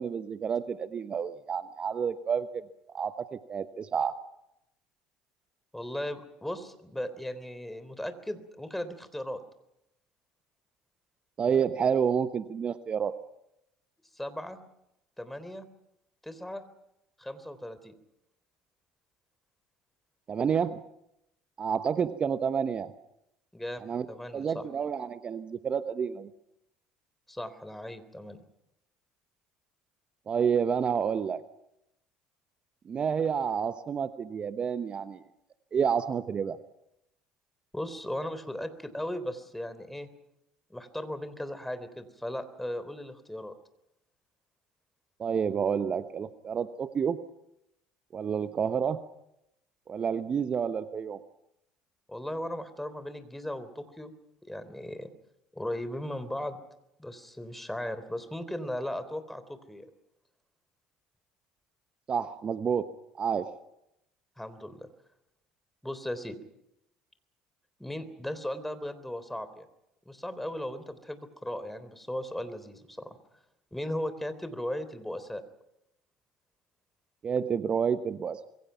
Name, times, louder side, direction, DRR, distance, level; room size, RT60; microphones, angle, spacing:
voice 1, 0.0-2.6 2.9-4.2 11.4-13.1 20.3-20.8 21.6-22.9 23.8-24.1 24.3-26.3 30.3-31.4 32.9-35.2 35.7-36.6 45.2-47.2 48.1-49.0 49.9-51.2 62.1-62.9 63.2-63.5 77.2-78.5, right 7 dB, 40° right, 11 dB, 1.1 m, -29 dB
voice 2, 5.7-9.4 14.1-14.6 15.2-15.7 16.2-16.6 17.2-17.9 23.5-24.7 27.3-28.4 37.7-40.1 40.7-43.5 52.1-54.1 54.5-55.1 55.5-56.6 57.0-59.9 64.4-64.9 65.8-66.4 67.8-69.7 70.1-73.2 73.7-75.4, left 1 dB, 5° left, 11 dB, 3.6 m, -37 dB
26.5 x 22.5 x 5.9 m, 0.84 s
hypercardioid pair, 65°, 3 cm